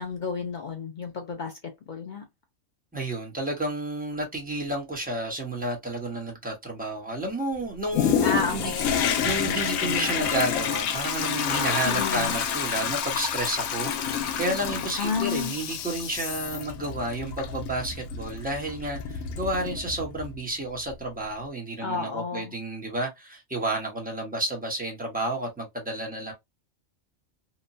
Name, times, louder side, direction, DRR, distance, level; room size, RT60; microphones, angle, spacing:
voice 1, 0.0-2.3 8.2-9.1 11.8-12.4 15.0-15.5 21.8-22.6, left 4 dB, 60° left, 0.5 m, -31 dB
voice 2, 2.9-8.7 9.2-13.9 14.4-26.3, right 1 dB, 10° right, 0.8 m, -31 dB
Toilet flush, 7.9-20.4 20.9-21.0, left 7 dB, 85° left, 1.0 m, -29 dB
2.9 x 2.1 x 2.5 m
omnidirectional pair, 1.4 m